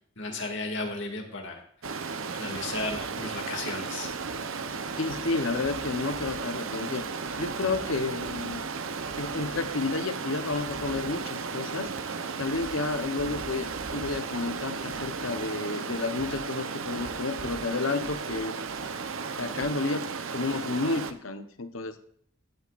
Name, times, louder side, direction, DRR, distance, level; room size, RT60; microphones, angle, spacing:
voice 1, 0.2-4.1, left 2 dB, 65° left, 2 dB, 2.3 m, -35 dB
Stream, 1.8-21.1, right 5 dB, 85° right, 0.9 m, -35 dB
voice 2, 5.0-7.0 7.4-8.6 9.2-11.9 12.4-18.6 19.3-22.0, left 3 dB, 85° left, 9 dB, 1.0 m, -31 dB
15.5 x 8.4 x 2.5 m, 0.64 s
head